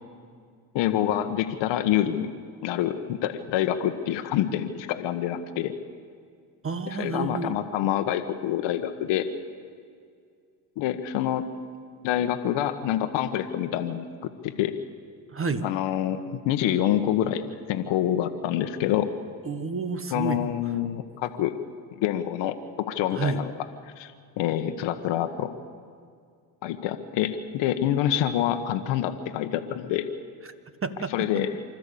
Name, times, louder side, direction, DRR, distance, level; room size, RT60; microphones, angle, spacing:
voice 1, 0.7-2.3 2.6-5.7 6.9-9.3 10.8-11.5 12.0-14.7 15.6-16.2 16.4-19.1 20.1-21.6 22.0-23.5 24.0-25.5 26.6-30.1 31.1-31.5, left 11 dB, 70° left, 7 dB, 1.3 m, -26 dB
voice 2, 6.6-7.5 15.3-15.7 19.4-20.5 23.1-23.4 30.4-30.5 30.8-31.4, right 4 dB, 30° right, 11 dB, 1.5 m, -30 dB
25.5 x 13.0 x 8.5 m, 2.2 s
supercardioid pair, 70°, 45 cm